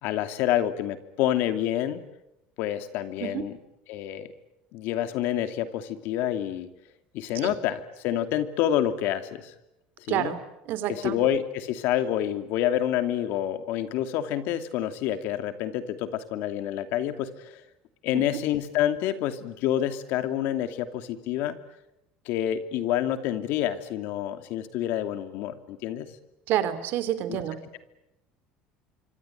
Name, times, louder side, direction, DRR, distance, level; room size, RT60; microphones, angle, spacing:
voice 1, 0.0-2.0 2.6-3.6 3.9-4.3 4.7-6.7 7.1-9.5 10.1-10.4 11.0-17.6 18.0-21.5 22.3-26.1 27.3-27.4, left 11 dB, 70° left, 9 dB, 2.7 m, -28 dB
voice 2, 10.1-10.4 10.6-11.2 18.1-18.3 26.5-27.6, right 11 dB, 60° right, 13 dB, 3.1 m, -28 dB
25.5 x 25.5 x 9.2 m, 0.88 s
cardioid pair, 125°, 4 cm